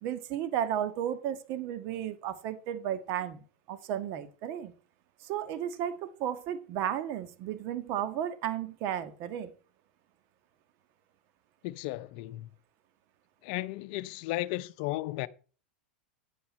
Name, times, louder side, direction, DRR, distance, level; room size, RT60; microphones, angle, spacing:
voice 1, 0.0-4.7 5.2-9.5, right 10 dB, 50° right, 1.5 m, -34 dB
voice 2, 11.6-12.5 13.4-15.3, left 17 dB, 55° left, 0.7 m, -34 dB
9.9 x 8.2 x 4.2 m
hypercardioid pair, 100°, 5 cm